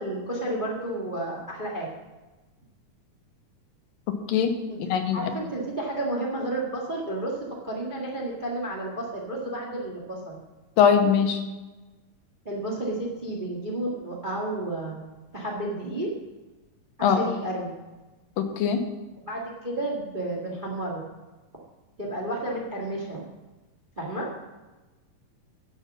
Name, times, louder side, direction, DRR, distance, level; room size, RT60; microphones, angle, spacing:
voice 1, 0.0-1.9 4.7-7.4 7.6-10.4 12.4-15.0 15.3-16.1 17.0-17.7 19.3-21.0 22.0-23.2 24.0-24.3, right 1 dB, 25° right, -2 dB, 1.1 m, -31 dB
voice 2, 4.9-5.2 10.8-11.4 17.0-17.2 18.4-18.8, left 7 dB, 85° left, 6 dB, 2.8 m, -21 dB
10.5 x 7.0 x 7.2 m, 1.2 s
omnidirectional pair, 3.9 m